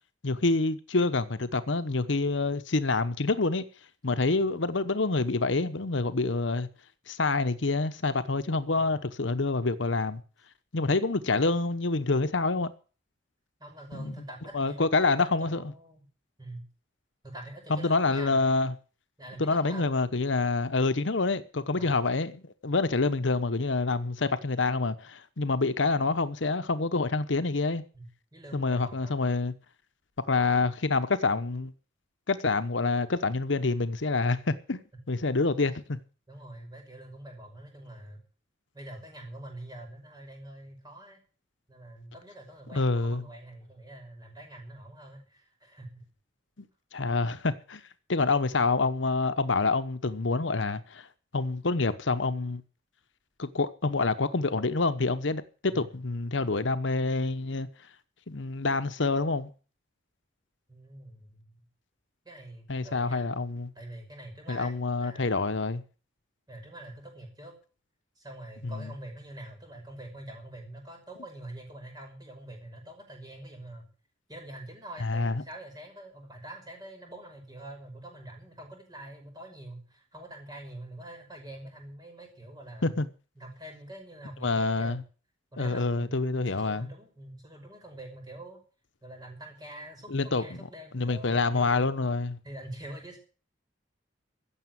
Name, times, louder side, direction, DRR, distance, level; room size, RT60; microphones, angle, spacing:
voice 1, 0.2-3.6 4.0-6.7 7.1-10.2 10.7-12.7 13.9-14.1 14.5-15.6 17.7-18.7 19.4-27.8 28.5-29.5 30.3-31.7 32.3-36.0 42.7-43.3 46.9-47.8 48.1-51.1 51.3-52.6 53.4-57.7 58.3-59.5 62.7-63.7 64.5-65.8 68.6-68.7 75.0-75.4 82.8-83.1 84.4-85.0 85.6-86.9 90.1-90.7 90.9-92.4, left 3 dB, 70° left, 1.0 m, -27 dB
voice 2, 8.5-9.0 13.6-16.0 16.4-16.6 17.2-18.4 19.2-19.9 21.7-22.1 27.9-29.2 36.3-38.2 38.7-41.2 41.7-46.0 55.7-55.9 60.7-61.6 62.2-63.3 63.8-65.3 66.5-67.5 68.2-73.9 74.3-83.0 83.4-85.0 85.5-88.6 89.0-91.9 92.4-93.2, right 1 dB, 20° right, 5.8 m, -45 dB
15.5 x 7.1 x 9.3 m
head